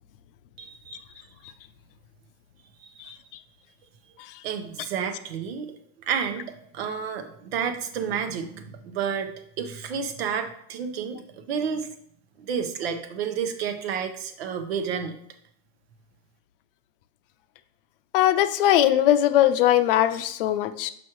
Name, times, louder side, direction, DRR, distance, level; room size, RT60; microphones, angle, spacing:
voice 1, 0.6-1.0 2.8-3.1 4.4-5.7 6.1-9.3 9.6-11.2 11.5-11.9 12.4-15.2, right 7 dB, 85° right, 1.0 m, -30 dB
voice 2, 18.1-20.9, left 12 dB, 65° left, 0.6 m, -20 dB
6.3 x 6.2 x 3.1 m
supercardioid pair, 170°, 30 cm